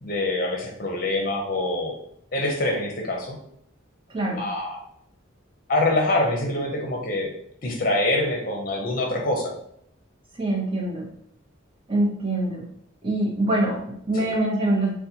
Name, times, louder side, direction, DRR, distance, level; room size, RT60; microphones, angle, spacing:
voice 1, 0.0-1.9 2.3-3.4 4.3-4.8 5.7-7.3 7.6-9.5 14.1-14.3, left 2 dB, 45° left, 1 dB, 0.7 m, -25 dB
voice 2, 4.1-4.5 10.4-11.1 11.9-12.6 13.0-14.9, right 1 dB, 25° right, -4 dB, 0.8 m, -24 dB
4.0 x 2.2 x 2.8 m, 0.70 s
head